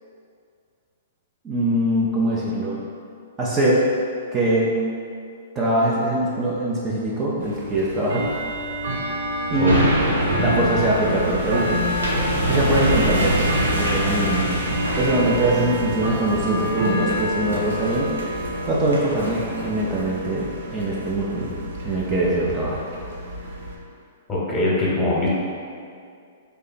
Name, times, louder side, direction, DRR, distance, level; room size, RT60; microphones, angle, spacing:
voice 1, 1.4-2.8 3.4-3.8 4.3-4.7 5.5-8.2 9.5-9.8 10.4-11.8 12.5-13.3 13.7-14.5 15.0-18.1 18.6-21.5 21.8-22.8, right 1 dB, 25° right, -6 dB, 0.6 m, -22 dB
Bell / Tick-tock, 7.4-23.7, left 1 dB, 65° right, 0.7 m, -29 dB
sound 1, 9.6-21.1 21.6-21.7, right 1 dB, 90° right, 0.9 m, -26 dB
voice 2, 10.2-10.6 24.3-25.3, left 1 dB, 20° left, -6 dB, 1.1 m, -23 dB
3.4 x 2.7 x 4.1 m, 2.3 s
hypercardioid pair, 120°, 0 cm